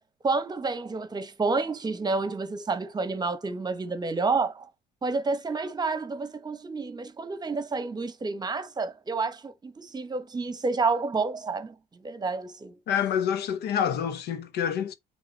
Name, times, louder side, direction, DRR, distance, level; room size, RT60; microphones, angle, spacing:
voice 1, 0.2-4.6 5.0-11.7 12.0-12.8, right 4 dB, 25° right, 1.0 m, -29 dB
voice 2, 12.9-14.9, left 8 dB, 75° left, 1.1 m, -27 dB
8.8 x 3.3 x 4.0 m
cardioid pair, 110°, 17 cm